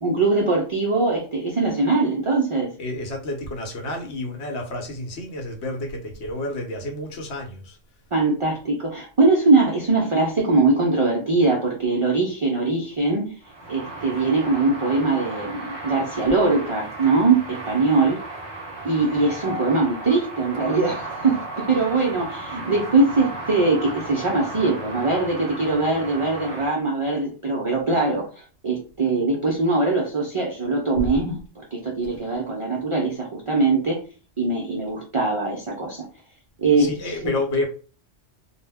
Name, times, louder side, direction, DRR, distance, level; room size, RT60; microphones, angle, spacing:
voice 1, 0.0-2.8 8.1-13.3 13.7-18.2 18.8-28.3 28.6-34.0 34.4-36.1 36.6-37.3, right 3 dB, 60° right, 0.3 m, -22 dB
voice 2, 2.8-7.8 31.0-31.1 36.8-37.6, left 2 dB, 70° left, 1.0 m, -29 dB
sound 1, 13.4-26.7, right 2 dB, 25° right, 1.0 m, -35 dB
2.2 x 2.1 x 3.3 m
omnidirectional pair, 1.2 m